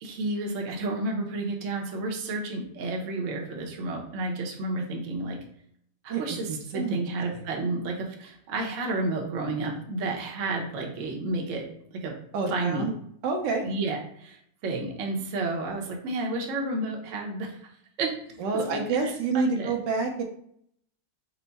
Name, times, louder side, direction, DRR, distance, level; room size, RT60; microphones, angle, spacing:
voice 1, 0.0-5.4 6.0-11.6 11.9-12.1 12.5-12.9 13.6-17.6 18.0-19.7, right 2 dB, 55° right, 0 dB, 0.9 m, -31 dB
voice 2, 6.1-7.0 12.3-12.9 13.2-13.6 18.4-20.2, right 4 dB, 75° right, 2 dB, 1.3 m, -28 dB
4.4 x 2.1 x 4.0 m, 0.67 s
omnidirectional pair, 2.0 m